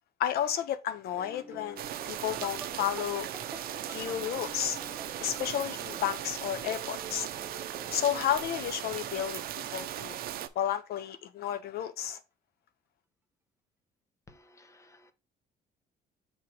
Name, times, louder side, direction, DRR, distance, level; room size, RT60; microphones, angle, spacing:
voice 1, 0.2-3.3 3.9-4.8 5.2-7.3 7.9-9.4 9.7-10.2 10.6-12.2, left 10 dB, 65° left, 0.5 m, -32 dB
sound 1, 1.2-9.5 9.7-10.3, right 2 dB, 10° right, 0.6 m, -48 dB
sound 2, 1.8-10.5, right 11 dB, 60° right, 0.6 m, -38 dB
voice 2, 14.3-15.1, left 2 dB, 20° left, 0.9 m, -57 dB
5.9 x 3.6 x 4.5 m
cardioid pair, 110°, 17 cm